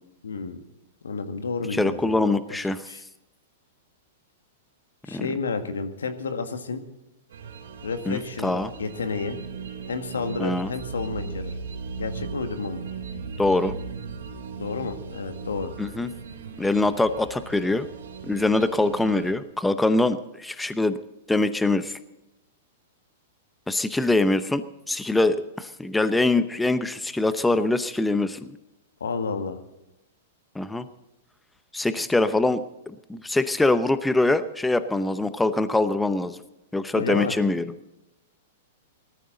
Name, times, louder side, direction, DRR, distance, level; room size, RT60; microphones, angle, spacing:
voice 1, 0.2-0.6 1.0-2.2 2.5-2.6 2.9-3.0 5.0-6.8 7.8-8.5 8.8-9.4 9.9-11.6 12.0-12.8 14.6-15.7 29.0-29.6 36.9-37.4, left 4 dB, 80° left, 7 dB, 1.7 m, -30 dB
voice 2, 1.7-2.9 5.1-5.3 8.1-8.7 10.4-10.7 13.4-13.7 15.8-16.1 16.6-17.9 18.2-21.0 21.3-22.0 23.7-28.6 30.5-30.9 31.7-36.4 36.7-37.6, left 2 dB, 5° left, 12 dB, 0.8 m, -23 dB
sound 1, 7.3-19.3, right 5 dB, 70° right, 2.7 m, -37 dB
18.5 x 14.0 x 3.9 m, 0.93 s
hypercardioid pair, 110°, 0 cm